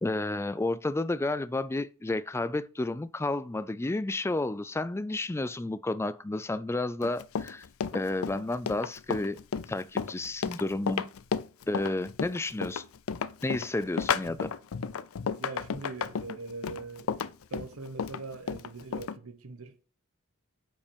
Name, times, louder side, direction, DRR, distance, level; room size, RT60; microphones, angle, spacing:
voice 1, 0.0-7.6 7.9-9.4 9.7-11.0 11.7-12.8 13.4-14.5, left 2 dB, 10° left, 0.3 m, -31 dB
Run, 7.0-19.2, left 6 dB, 70° left, 0.5 m, -33 dB
voice 2, 15.4-17.1 17.5-19.8, right 3 dB, 70° right, 1.0 m, -42 dB
8.5 x 5.9 x 5.3 m
head